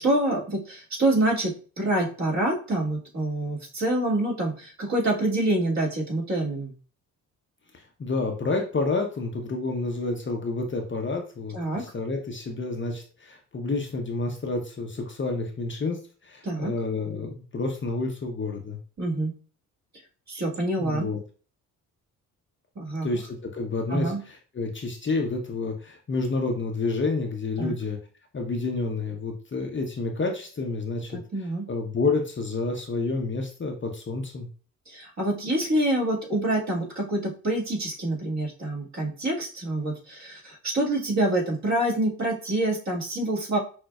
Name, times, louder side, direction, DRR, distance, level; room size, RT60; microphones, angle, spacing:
voice 1, 0.0-6.7 11.5-11.8 16.4-16.7 19.0-19.3 20.3-21.1 22.8-23.1 23.9-24.2 27.6-27.8 31.1-31.6 34.9-43.6, right 1 dB, 40° right, -2 dB, 1.9 m, -26 dB
voice 2, 7.7-18.8 20.8-21.2 23.0-28.0 28.3-34.5, left 3 dB, 30° left, 2 dB, 0.8 m, -29 dB
5.9 x 2.2 x 2.3 m, 0.38 s
hypercardioid pair, 50°, 41 cm